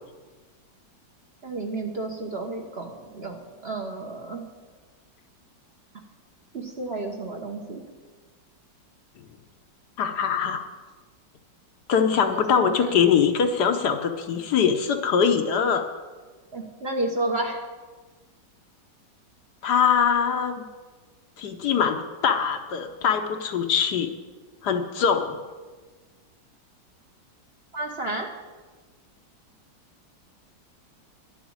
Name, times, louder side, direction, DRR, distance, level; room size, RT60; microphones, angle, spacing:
voice 1, 1.4-4.5 6.5-7.8 12.3-13.0 16.5-17.6 27.7-28.3, right 2 dB, 40° right, 2 dB, 1.2 m, -31 dB
voice 2, 10.0-10.6 11.9-15.9 19.6-20.6 21.4-24.1 24.6-25.4, left 7 dB, 65° left, 6 dB, 1.3 m, -22 dB
11.0 x 7.1 x 8.7 m, 1.4 s
omnidirectional pair, 2.0 m